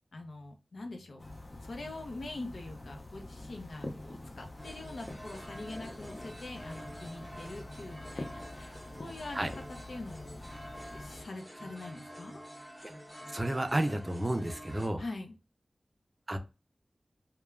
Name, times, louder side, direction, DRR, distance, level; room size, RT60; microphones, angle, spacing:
voice 1, 0.1-1.2 1.6-9.6 9.9-10.4 10.9-12.4 15.0-15.3, left 2 dB, 90° left, 4 dB, 0.6 m, -44 dB
sound 1, 1.2-11.2, left 2 dB, 35° left, 0.5 m, -46 dB
sound 2, 4.6-14.9, equal, 5° left, 0.7 m, -48 dB
voice 2, 13.3-15.0 16.3-16.4, right 1 dB, 25° right, 7 dB, 0.4 m, -31 dB
3.1 x 2.2 x 2.3 m, 0.29 s
wide cardioid pair, 90°, 0 cm